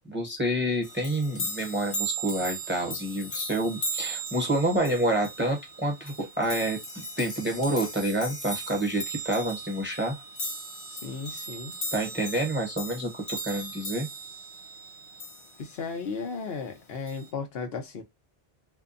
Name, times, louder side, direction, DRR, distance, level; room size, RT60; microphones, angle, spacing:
voice 1, 0.0-10.1 11.9-14.1, right 1 dB, 10° right, 0.8 m, -28 dB
sound 1, 0.8-15.8 17.1-17.3, right 1 dB, 35° left, 0.6 m, -37 dB
voice 2, 10.9-11.8 15.6-18.0, left 5 dB, 75° left, 1.0 m, -35 dB
2.7 x 2.2 x 2.5 m
omnidirectional pair, 1.0 m